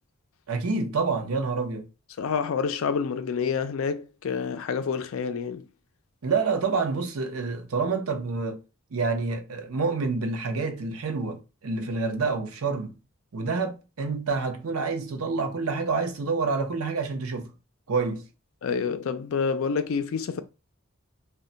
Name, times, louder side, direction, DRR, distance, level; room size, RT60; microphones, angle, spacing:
voice 1, 0.5-1.9 6.2-8.6 8.9-13.0 13.3-17.5 17.9-18.2, right 4 dB, 85° right, 0.6 m, -28 dB
voice 2, 2.2-5.6 18.6-20.4, left 6 dB, 70° left, 0.4 m, -28 dB
2.2 x 2.1 x 3.8 m
head